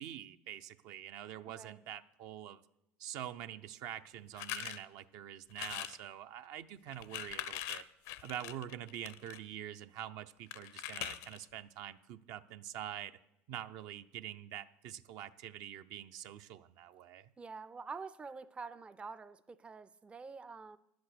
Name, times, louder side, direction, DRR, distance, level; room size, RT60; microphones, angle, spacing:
voice 1, 0.0-2.6 3.0-7.8 8.2-13.2 13.5-17.3, right 11 dB, 65° right, 0.6 m, -45 dB
voice 2, 1.5-1.8 17.4-20.8, right 4 dB, 15° right, 0.4 m, -47 dB
sound 1, 4.3-4.8 5.5-6.0 6.9-9.4 10.5-11.4, left 12 dB, 70° left, 0.6 m, -42 dB
10.5 x 8.0 x 6.5 m
supercardioid pair, 95°, 7 cm